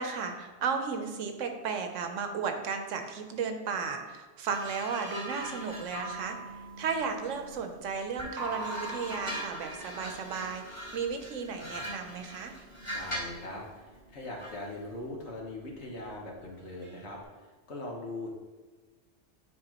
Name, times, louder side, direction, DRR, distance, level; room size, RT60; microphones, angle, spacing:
voice 1, 0.0-6.4 6.8-12.5, right 5 dB, 85° right, 5 dB, 1.1 m, -34 dB
sound 1, 4.5-7.7 8.2-13.4 14.4-14.6, equal, 20° left, 2.3 m, -41 dB
sound 2, 5.4-17.2, right 1 dB, 55° right, 1.1 m, -47 dB
voice 2, 12.9-18.3, left 2 dB, 65° left, -1 dB, 1.5 m, -41 dB
9.7 x 4.2 x 3.0 m, 1.3 s
omnidirectional pair, 1.3 m